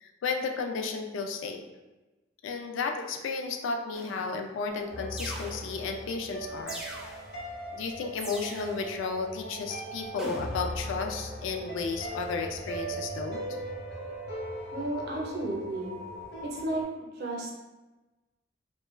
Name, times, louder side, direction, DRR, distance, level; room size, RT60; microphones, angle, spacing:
voice 1, 0.0-1.6 2.4-6.8 7.7-13.5, left 4 dB, 90° left, 3 dB, 0.3 m, -33 dB
sound 1, 3.9-4.4 5.2-6.0 6.7-7.4 8.2-8.9 10.2-10.9, right 1 dB, 5° right, 0.4 m, -41 dB
sound 2, 4.7-16.8, right 1 dB, 60° left, 0.7 m, -39 dB
voice 2, 14.7-15.9 16.4-16.8 17.1-17.5, right 1 dB, 60° right, -2 dB, 0.6 m, -33 dB
2.2 x 2.2 x 3.0 m, 1.2 s
head